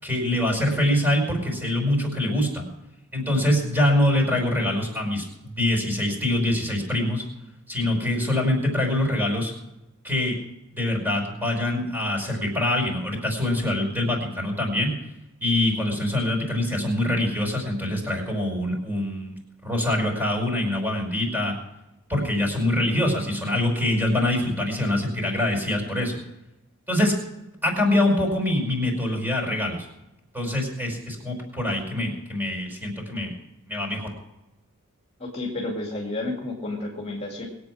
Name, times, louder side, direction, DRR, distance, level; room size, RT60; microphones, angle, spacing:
voice 1, 0.0-2.7 3.1-7.2 7.7-9.5 10.0-10.3 10.7-14.9 15.4-19.4 19.6-21.6 22.1-26.1 26.9-27.1 27.6-29.9 30.3-33.3 33.7-34.1, left 1 dB, 10° right, 1 dB, 5.1 m, -24 dB
voice 2, 35.2-37.5, left 2 dB, 25° left, -1 dB, 2.3 m, -31 dB
22.0 x 8.6 x 6.3 m, 0.95 s
head